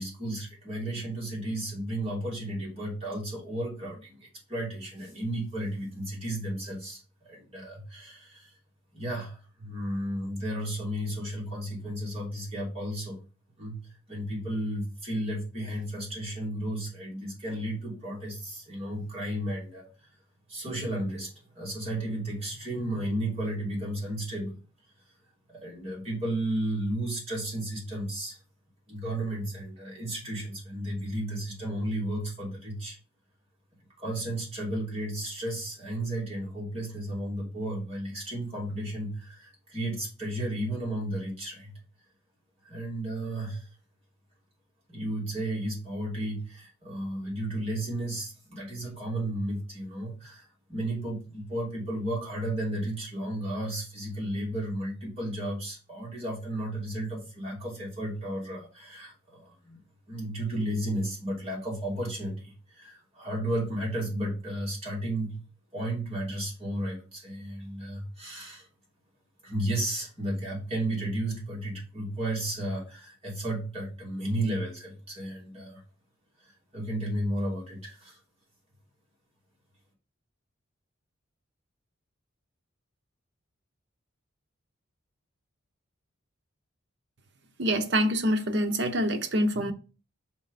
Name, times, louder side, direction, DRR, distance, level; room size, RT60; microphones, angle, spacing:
voice 1, 0.0-8.5 8.9-13.2 13.6-13.8 14.1-19.8 20.5-24.5 25.5-28.4 28.9-33.0 34.0-41.8 42.6-43.7 44.9-59.8 60.1-65.4 65.7-68.7 69.4-75.8 76.4-78.2, right 1 dB, 30° right, 2.5 m, -33 dB
voice 2, 87.6-89.7, equal, 55° right, 0.8 m, -26 dB
6.0 x 4.2 x 4.1 m
head